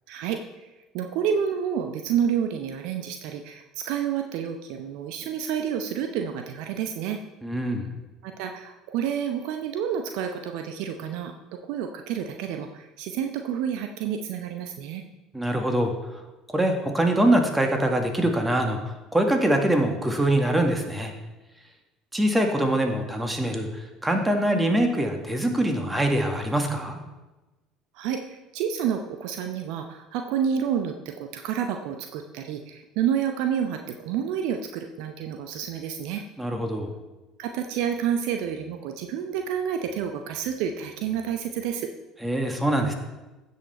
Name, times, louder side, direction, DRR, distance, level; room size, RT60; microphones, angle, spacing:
voice 1, 0.1-7.2 8.2-15.0 27.9-36.2 37.4-41.9, right 8 dB, 60° right, 5 dB, 0.7 m, -29 dB
voice 2, 7.4-8.0 15.3-15.9 16.5-21.1 22.1-27.0 36.4-36.9 42.2-42.9, right 1 dB, 10° right, 4 dB, 1.9 m, -24 dB
16.0 x 5.7 x 4.4 m, 1.1 s
figure-of-eight pair, 65°, 0 cm